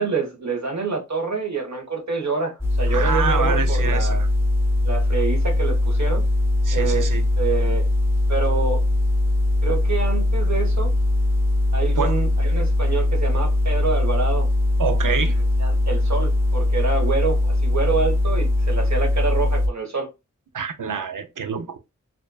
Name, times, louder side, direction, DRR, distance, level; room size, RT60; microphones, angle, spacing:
voice 1, 0.0-4.2 4.8-6.2 6.7-7.1 7.4-7.8 8.3-8.8 9.6-10.9 11.7-14.5 15.6-20.1, right 4 dB, 60° right, 1.4 m, -27 dB
sound 1, 2.6-19.7, left 1 dB, 10° right, 0.9 m, -21 dB
voice 2, 2.9-4.3 6.6-7.2 12.0-12.2 14.8-15.4 20.5-21.8, right 6 dB, 80° right, 0.7 m, -26 dB
4.2 x 2.6 x 2.3 m
wide cardioid pair, 60°, 31 cm